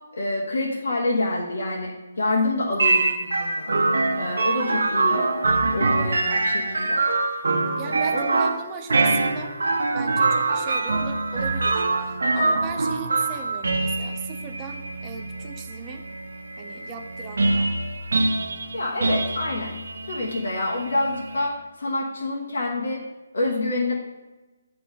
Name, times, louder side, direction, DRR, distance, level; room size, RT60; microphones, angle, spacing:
voice 1, 0.2-3.8 4.2-5.3 5.7-7.0 7.8-8.3 18.7-19.8 20.1-23.0 23.3-23.9, left 2 dB, 65° left, -3 dB, 1.3 m, -27 dB
sound 1, 2.8-21.5, right 3 dB, 75° right, 0.8 m, -24 dB
voice 2, 7.8-9.5 9.9-16.0 16.6-17.7, right 6 dB, 15° right, 3 dB, 0.3 m, -38 dB
8.3 x 3.4 x 5.1 m, 1.2 s
hypercardioid pair, 180°, 0 cm